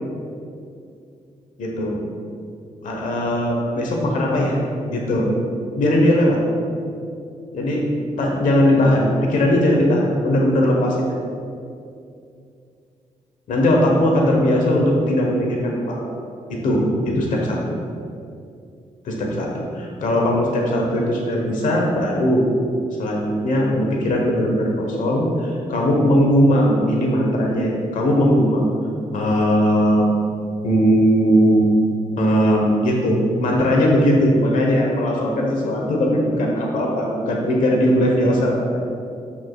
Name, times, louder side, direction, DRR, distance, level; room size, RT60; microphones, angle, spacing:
voice 1, 1.6-2.0 2.8-4.6 4.9-5.3 5.7-6.4 7.5-7.9 8.2-11.1 13.5-16.0 16.5-17.7 19.0-22.4 23.0-28.6 29.1-30.2 30.6-31.7 32.2-38.8, equal, 75° left, -1 dB, 1.2 m, -19 dB
12.0 x 6.1 x 2.4 m, 2.5 s
wide cardioid pair, 170°, 13 cm